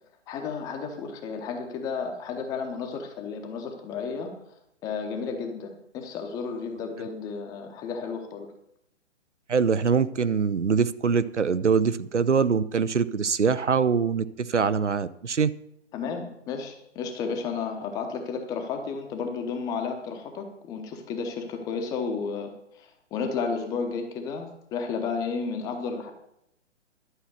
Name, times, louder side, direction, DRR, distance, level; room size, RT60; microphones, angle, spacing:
voice 1, 0.3-4.3 4.8-8.5 15.9-26.1, left 5 dB, 10° left, 4 dB, 0.7 m, -32 dB
voice 2, 9.5-15.5, right 6 dB, 75° right, 15 dB, 0.7 m, -23 dB
11.5 x 6.0 x 8.0 m, 0.77 s
figure-of-eight pair, 130°, 36 cm